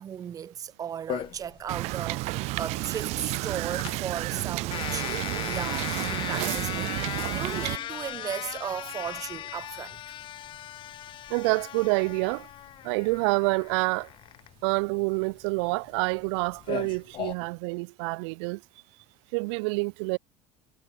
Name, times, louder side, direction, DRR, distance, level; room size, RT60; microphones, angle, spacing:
voice 1, 0.0-10.0, right 8 dB, 25° right, 2.4 m, -36 dB
sound 1, 1.1-17.3, left 13 dB, 35° left, 1.6 m, -38 dB
Wind / Boat Water vehicle, 1.7-7.8, right 22 dB, 50° right, 0.5 m, -31 dB
voice 2, 11.3-12.5 12.8-14.1 14.6-18.6 19.3-20.2, right 31 dB, 80° right, 3.3 m, -27 dB
cardioid pair, 175°, 15 cm